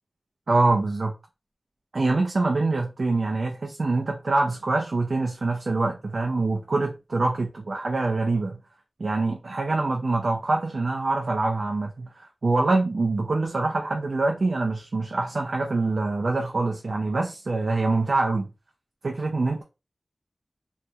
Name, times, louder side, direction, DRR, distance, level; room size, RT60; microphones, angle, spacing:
voice 1, 0.5-1.1 1.9-8.6 9.0-18.5 19.0-19.6, right 3 dB, 75° right, 0.5 m, -25 dB
3.1 x 2.8 x 2.3 m
wide cardioid pair, 65°, 0 cm